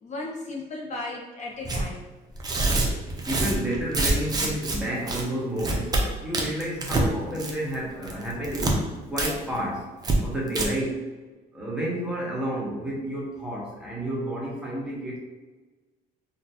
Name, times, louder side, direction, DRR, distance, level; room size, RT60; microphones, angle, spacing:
voice 1, 0.0-2.0, left 2 dB, 40° left, -1 dB, 0.5 m, -35 dB
Tearing, 1.7-1.8 2.4-4.8 5.1-5.2 5.6-6.0 6.3-7.1 7.4-7.7 8.0-8.7 9.2-9.3 9.6-9.7 10.0-10.2 10.5-10.7, right 2 dB, 25° right, 0.7 m, -25 dB
voice 2, 3.3-6.0 6.2-8.8 9.1-9.9 10.2-11.1 11.5-15.2, right 1 dB, 5° right, -5 dB, 1.1 m, -30 dB
3.9 x 2.2 x 2.8 m, 1.2 s
cardioid pair, 110°, 17 cm